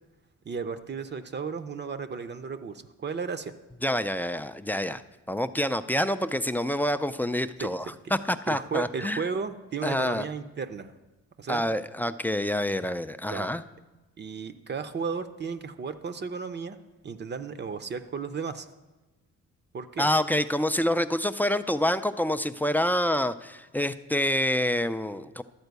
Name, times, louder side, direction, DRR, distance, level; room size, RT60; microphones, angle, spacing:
voice 1, 0.4-3.5 7.6-7.7 8.5-10.9 11.4-11.7 13.3-13.5 14.2-16.8 17.0-18.7 19.7-20.1, right 5 dB, 35° right, 10 dB, 0.6 m, -34 dB
voice 2, 3.8-5.0 5.3-9.2 9.8-10.2 11.5-13.6 20.0-25.4, left 1 dB, 5° left, 11 dB, 0.3 m, -27 dB
11.5 x 4.4 x 8.1 m, 1.1 s
cardioid pair, 90°, 30 cm